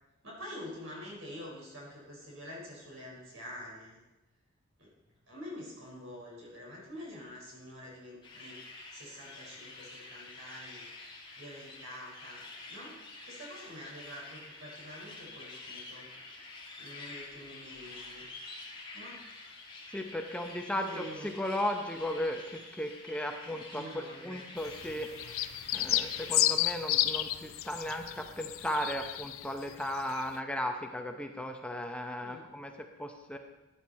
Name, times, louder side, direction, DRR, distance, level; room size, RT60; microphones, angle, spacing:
voice 1, 0.2-4.0 4.8-4.9 5.3-8.5 8.9-10.8 11.4-16.0 16.8-18.3 18.9-19.2 20.7-21.3 23.7-24.5 32.2-32.5, left 1 dB, 75° right, -3 dB, 4.8 m, -46 dB
sound 1, 8.2-26.3, left 3 dB, 25° left, 2.1 m, -48 dB
voice 2, 19.9-21.1 21.4-25.4 25.7-33.4, left 1 dB, 5° left, 4 dB, 0.8 m, -36 dB
sound 2, 24.6-29.7 30.0-30.2, left 13 dB, 85° left, 0.5 m, -32 dB
14.0 x 9.5 x 4.2 m, 0.96 s
head